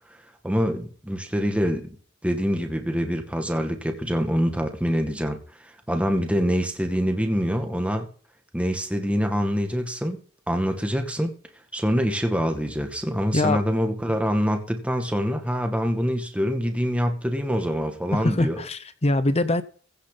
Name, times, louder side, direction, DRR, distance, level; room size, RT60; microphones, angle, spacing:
voice 1, 0.4-1.9 2.2-5.4 5.9-8.1 8.5-10.2 10.5-11.3 11.7-18.6, equal, 5° right, 5 dB, 2.0 m, -25 dB
voice 2, 18.2-19.6, left 2 dB, 30° left, 13 dB, 0.9 m, -23 dB
16.0 x 9.2 x 4.0 m, 0.43 s
head